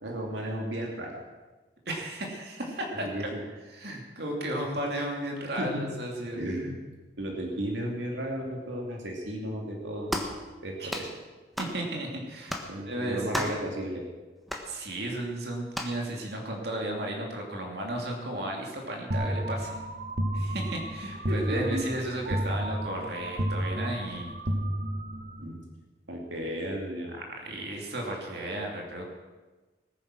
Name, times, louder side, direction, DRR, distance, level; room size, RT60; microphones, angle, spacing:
voice 1, 0.0-1.2 2.9-3.4 5.6-5.9 6.4-6.8 7.2-10.2 10.6-11.1 12.7-14.0 21.3-21.8 25.4-25.6 26.1-27.1, right 1 dB, 85° right, 0 dB, 2.6 m, -34 dB
voice 2, 1.9-3.3 3.7-6.4 10.8-10.9 11.6-12.5 12.8-13.6 14.7-19.7 20.3-24.3 27.1-29.0, right 1 dB, 60° right, 0 dB, 2.7 m, -34 dB
sound 1, 10.1-10.4 10.9-11.1 11.6-11.8 12.5-12.7 13.3-13.6 14.5-14.7 15.7-16.0, left 1 dB, ahead, 1.3 m, -33 dB
sound 2, 19.1-25.5, right 1 dB, 45° right, 1.3 m, -31 dB
20.0 x 9.4 x 6.2 m, 1.2 s
head